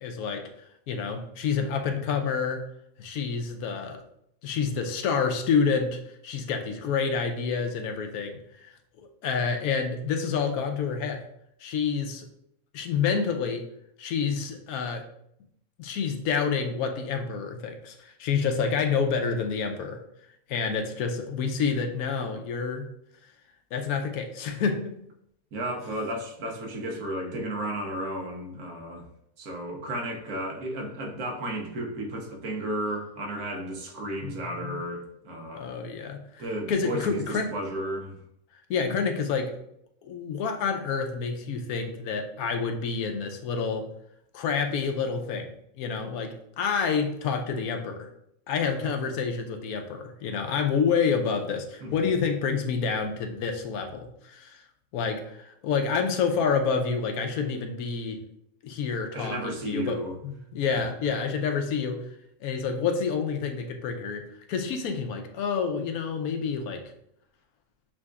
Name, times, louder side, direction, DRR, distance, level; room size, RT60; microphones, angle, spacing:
voice 1, 0.0-0.4 0.9-2.6 3.0-4.0 4.4-8.7 9.2-11.2 11.6-12.3 12.7-13.6 14.0-15.0 15.8-20.0 20.5-22.9 23.7-24.9 34.2-34.8 35.6-36.2 36.7-37.5 38.7-39.5 40.0-43.9 44.3-45.5 45.8-48.1 48.5-54.6 54.9-58.2 58.6-60.0 60.2-62.0 62.4-64.2 64.5-66.8, left 5 dB, 85° left, 4 dB, 1.1 m, -28 dB
voice 2, 25.5-29.1 29.4-35.7 36.4-38.2 51.8-51.9 59.1-60.2 60.7-60.8, right 1 dB, 85° right, 1 dB, 1.4 m, -33 dB
7.3 x 2.6 x 2.3 m, 0.76 s
omnidirectional pair, 1.5 m